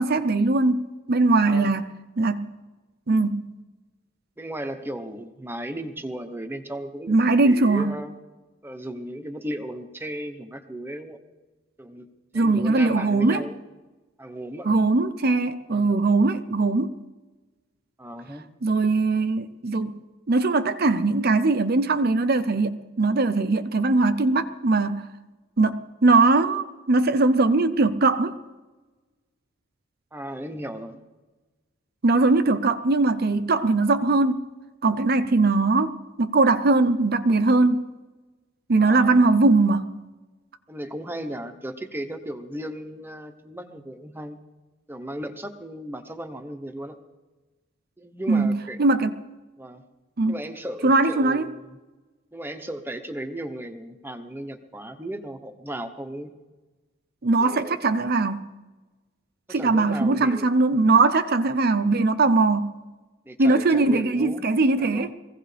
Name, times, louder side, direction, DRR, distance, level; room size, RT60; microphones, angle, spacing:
voice 1, 0.0-1.9 2.2-2.5 3.1-3.5 7.1-7.9 12.3-13.4 14.6-17.0 18.6-19.9 20.3-25.1 25.6-28.3 32.0-34.4 34.8-37.8 38.7-39.9 48.3-49.1 50.2-50.3 50.8-51.5 57.2-58.5 59.5-62.7 63.4-65.1, right 3 dB, 45° right, 0.6 m, -20 dB
voice 2, 1.4-1.7 4.4-7.2 7.4-8.1 8.6-11.2 11.8-12.1 12.3-13.6 14.2-14.8 15.7-15.9 18.0-18.5 30.1-31.0 38.8-39.3 40.7-44.4 44.9-47.0 48.0-48.8 49.6-49.8 50.3-51.8 52.3-56.3 57.4-57.8 59.5-60.5 63.2-64.4 64.8-65.1, right 1 dB, 10° right, 0.9 m, -35 dB
23.0 x 16.0 x 3.4 m
head